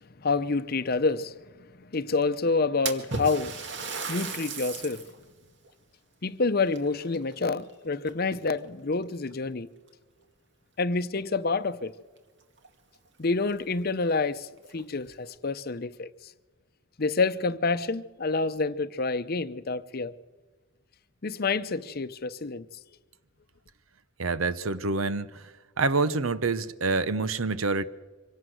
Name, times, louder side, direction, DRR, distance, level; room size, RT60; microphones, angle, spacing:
voice 1, 0.2-1.4 1.8-3.6 4.1-5.0 6.2-9.7 10.8-11.9 13.2-16.1 17.0-20.1 21.2-22.7, left 3 dB, 45° left, 0.7 m, -28 dB
Splash splatter, 2.9-5.2 5.6-5.7 6.7-7.7 8.1-8.5 9.3-9.4 9.9-10.0 12.2-12.3 12.6-12.7 13.2-13.3 13.7-13.8 14.6-15.1, right 4 dB, 60° right, 1.9 m, -36 dB
voice 2, 24.2-25.5 25.8-27.8, right 3 dB, 80° right, 0.9 m, -27 dB
25.0 x 17.0 x 7.9 m
head